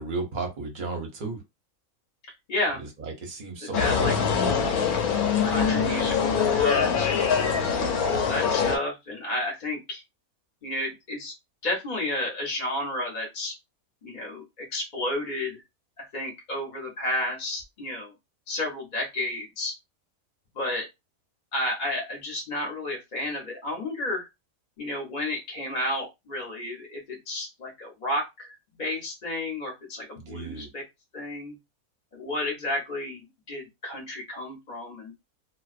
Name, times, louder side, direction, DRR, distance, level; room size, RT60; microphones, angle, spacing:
voice 1, 0.0-1.4 2.7-4.3 7.3-8.0 30.2-30.7, right 3 dB, 45° right, 2 dB, 0.7 m, -35 dB
voice 2, 2.5-2.8 3.6-4.7 5.4-7.2 8.0-10.0 10.6-11.3 11.6-13.6 14.0-15.6 16.0-18.1 18.5-19.7 20.5-20.9 21.5-24.3 24.8-28.5 28.8-30.8 31.1-31.6 32.1-35.1, left 1 dB, 40° left, 0 dB, 0.8 m, -31 dB
sound 1, 3.7-8.8, left 6 dB, 85° left, 1.1 m, -24 dB
2.4 x 2.2 x 2.3 m, 0.22 s
omnidirectional pair, 1.5 m